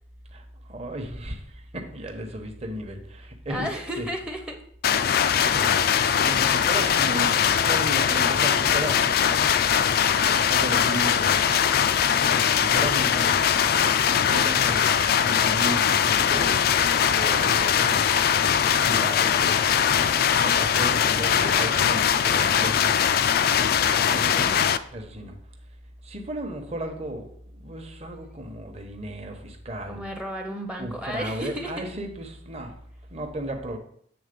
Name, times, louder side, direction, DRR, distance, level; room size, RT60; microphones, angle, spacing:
voice 1, 0.3-3.7 4.0-4.1 5.3-5.8 6.2-7.3 7.6-9.0 10.4-11.7 12.5-13.3 14.0-14.9 15.2-16.6 17.1-18.4 18.8-20.0 20.4-23.0 24.1-24.6 24.9-25.3 26.0-30.0 30.8-32.7 33.1-33.8, right 1 dB, 35° right, 4 dB, 0.9 m, -34 dB
voice 2, 3.5-4.6 24.0-24.6 29.9-31.9, equal, 5° right, 3 dB, 0.6 m, -34 dB
sound 1, 4.8-24.8, left 8 dB, 50° left, 0.3 m, -21 dB
8.0 x 3.7 x 5.2 m, 0.64 s
head